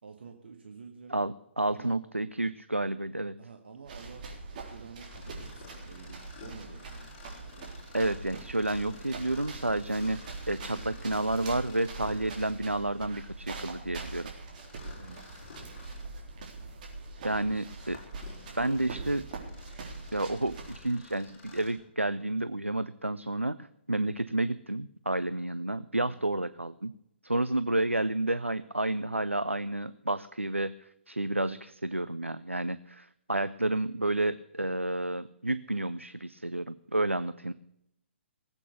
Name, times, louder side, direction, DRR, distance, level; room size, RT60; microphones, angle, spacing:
voice 1, 0.0-1.2 1.7-2.0 3.4-7.2 14.9-16.5 17.2-17.6 18.5-19.1 26.1-26.3 27.4-27.6, right 5 dB, 60° right, 4 dB, 1.6 m, -49 dB
voice 2, 1.1-3.4 7.9-14.3 17.2-18.0 18.6-19.2 20.1-26.9 27.2-37.5, right 2 dB, 90° right, 14 dB, 0.5 m, -30 dB
sound 1, 3.8-20.8, right 3 dB, 40° right, 3.7 m, -43 dB
Mechanisms, 5.0-12.7 14.5-16.1 16.7-16.8 17.5-21.9, left 4 dB, 30° left, 5.0 m, -52 dB
18.5 x 8.4 x 6.8 m, 0.79 s
figure-of-eight pair, 125°, 7 cm